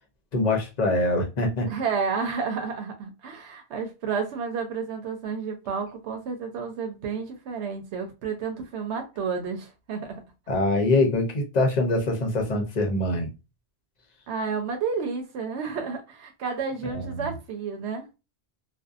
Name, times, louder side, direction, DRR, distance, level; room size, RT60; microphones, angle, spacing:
voice 1, 0.3-1.7 10.5-13.3 16.9-17.3, left 2 dB, 45° left, 0.7 m, -24 dB
voice 2, 1.7-10.2 14.3-18.1, right 5 dB, 85° right, 0.9 m, -31 dB
2.6 x 2.1 x 2.3 m
omnidirectional pair, 1.1 m